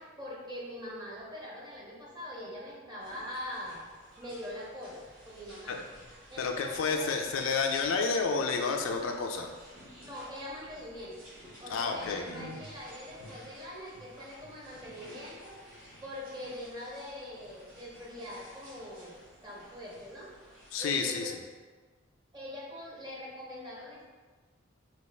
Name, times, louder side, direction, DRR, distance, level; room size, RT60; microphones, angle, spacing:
voice 1, 0.0-3.8 4.2-5.8 6.3-7.2 10.0-11.1 11.6-15.6 16.0-20.3 20.8-21.3 22.3-24.1, left 1 dB, 20° right, -4 dB, 0.6 m, -43 dB
sound 1, 3.0-20.9, equal, 45° right, 1.0 m, -52 dB
voice 2, 6.4-9.5 11.7-12.2 20.7-21.2, left 4 dB, 70° left, 3 dB, 0.3 m, -30 dB
2.8 x 2.3 x 3.2 m, 1.4 s
head